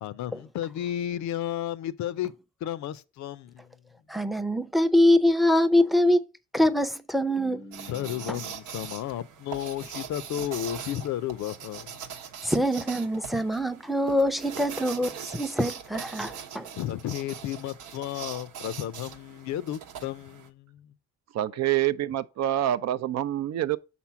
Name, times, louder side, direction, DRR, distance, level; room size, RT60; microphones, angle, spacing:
voice 1, 0.0-2.3 2.6-3.7 7.9-12.0 16.7-20.9 21.5-21.6, left 12 dB, 70° left, 0.5 m, -33 dB
voice 2, 4.1-6.2 6.5-8.4 12.4-16.7, left 1 dB, ahead, 0.5 m, -24 dB
sound 1, 7.7-20.5, right 8 dB, 85° right, 0.9 m, -41 dB
voice 3, 21.3-23.8, right 12 dB, 60° right, 0.5 m, -26 dB
5.9 x 4.1 x 5.7 m
cardioid pair, 90°, 30 cm